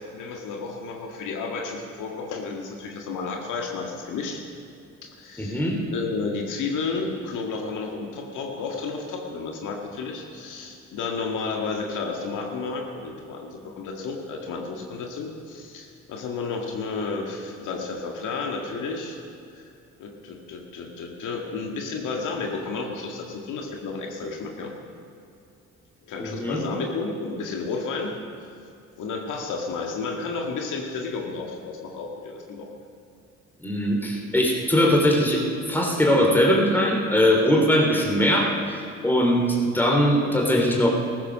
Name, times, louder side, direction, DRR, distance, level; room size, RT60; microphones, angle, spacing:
voice 1, 0.0-4.4 5.0-5.6 5.9-19.2 19.6-19.7 20.0-24.7 26.1-28.1 29.0-32.7, left 4 dB, 85° left, 1 dB, 1.9 m, -32 dB
voice 2, 5.4-5.8 26.2-26.6 33.6-35.4 35.7-38.8 39.0-40.9, equal, 5° left, -1 dB, 3.0 m, -21 dB
15.0 x 14.5 x 6.4 m, 2.6 s
cardioid pair, 90°, 30 cm